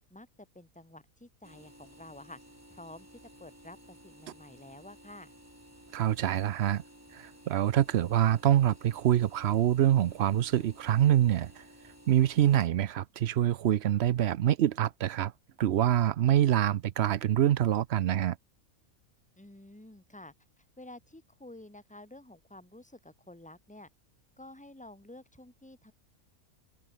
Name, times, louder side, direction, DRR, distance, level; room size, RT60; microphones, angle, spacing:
voice 1, 0.5-2.4 2.7-5.3 19.4-23.9 24.4-25.9, left 1 dB, 5° left, 2.1 m, -50 dB
sound 1, 1.4-12.7, equal, 10° right, 5.1 m, -55 dB
voice 2, 5.9-6.8 7.1-11.6 12.1-15.3 15.6-18.4, right 11 dB, 60° right, 0.8 m, -25 dB
omnidirectional pair, 1.5 m